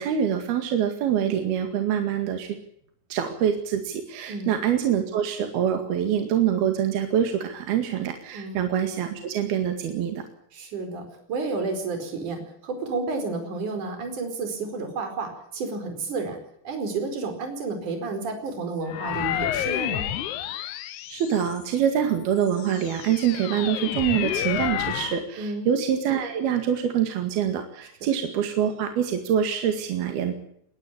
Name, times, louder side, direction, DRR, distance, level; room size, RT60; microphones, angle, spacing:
voice 1, 0.0-2.6 3.1-10.2 21.1-30.3, right 9 dB, 70° right, 6 dB, 3.9 m, -25 dB
voice 2, 4.3-4.6 8.3-8.6 10.5-16.4 16.6-20.1 25.4-25.7, right 3 dB, 50° right, 6 dB, 6.0 m, -31 dB
sound 1, 18.9-21.8 22.4-25.2, left 12 dB, 75° left, 1.8 m, -30 dB
22.0 x 17.5 x 8.7 m, 0.72 s
omnidirectional pair, 4.8 m